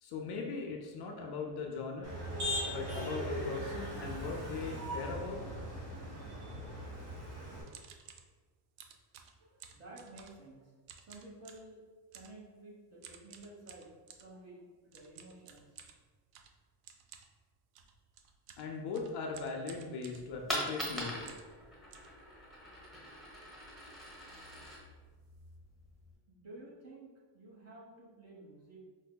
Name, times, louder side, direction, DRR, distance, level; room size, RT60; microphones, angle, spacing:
voice 1, 0.0-2.2 2.7-5.4 18.6-21.2, left 4 dB, 50° left, 1 dB, 0.6 m, -39 dB
Motor vehicle (road), 2.0-7.6, equal, 50° right, 1.3 m, -39 dB
sound 1, 7.7-8.3 8.8-10.5 10.8-11.7 12.1-12.4 13.0-14.3 14.9-21.6 21.9-22.8 23.2-23.3 23.5-23.8 24.1-24.3 24.9-25.0 25.2-25.5, right 7 dB, 65° right, 0.5 m, -55 dB
voice 2, 9.4-10.7 11.0-11.8 12.1-13.9 14.2-15.8 26.3-28.8, right 2 dB, 30° right, -4 dB, 1.1 m, -53 dB
Coin (dropping), 20.2-26.1, equal, ahead, 0.9 m, -42 dB
5.4 x 2.1 x 2.2 m, 1.4 s
cardioid pair, 105°, 50 cm